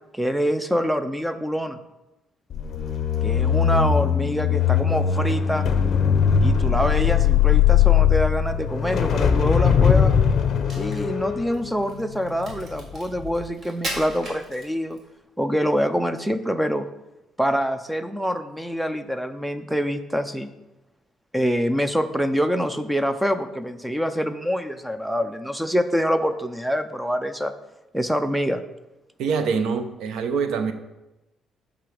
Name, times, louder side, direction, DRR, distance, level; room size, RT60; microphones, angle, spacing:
voice 1, 0.1-1.8 3.2-5.7 6.4-10.1 10.7-15.0 15.4-16.9 17.4-20.5 21.3-27.5 27.9-28.6, equal, ahead, 10 dB, 0.4 m, -25 dB
sound 1, 2.5-12.8 13.2-13.5, left 8 dB, 45° left, 0.6 m, -20 dB
Crack, 10.5-15.1, right 1 dB, 35° right, 1.9 m, -37 dB
voice 2, 29.2-30.7, right 5 dB, 75° right, 9 dB, 0.7 m, -24 dB
8.3 x 3.8 x 6.0 m, 1.0 s
cardioid pair, 155°, 0 cm